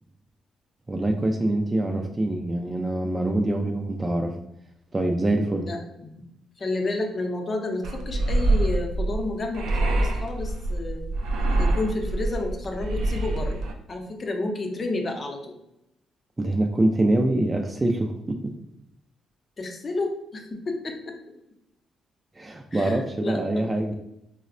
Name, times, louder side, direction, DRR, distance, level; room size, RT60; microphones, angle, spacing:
voice 1, 0.9-4.3 4.9-5.7 16.4-18.5 22.4-23.9, right 1 dB, 20° right, 3 dB, 0.3 m, -24 dB
voice 2, 5.6-6.2 6.6-11.0 11.6-13.6 13.9-15.5 19.6-21.2 22.7-23.6, left 2 dB, 40° left, 3 dB, 0.6 m, -31 dB
sound 1, 7.8-13.7, right 2 dB, 85° right, 0.4 m, -25 dB
4.0 x 2.0 x 2.5 m, 0.82 s
cardioid pair, 90°, 0 cm